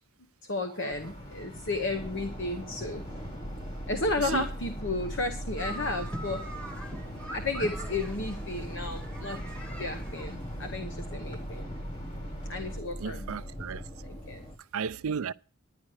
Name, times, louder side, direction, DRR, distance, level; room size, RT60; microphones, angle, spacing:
voice 1, 0.4-3.0 3.9-6.5 7.3-9.4 9.8-11.7 12.5-13.4 14.0-14.4, left 2 dB, 55° left, 1.0 m, -33 dB
sound 1, 0.9-12.8, equal, 40° left, 3.6 m, -44 dB
sound 2, 1.9-14.6, equal, 25° left, 1.0 m, -40 dB
voice 2, 4.2-4.5 13.0-13.8 14.7-15.3, right 6 dB, 75° right, 0.5 m, -34 dB
sound 3, 5.6-10.8, right 1 dB, 5° left, 1.3 m, -42 dB
11.0 x 10.0 x 4.8 m
head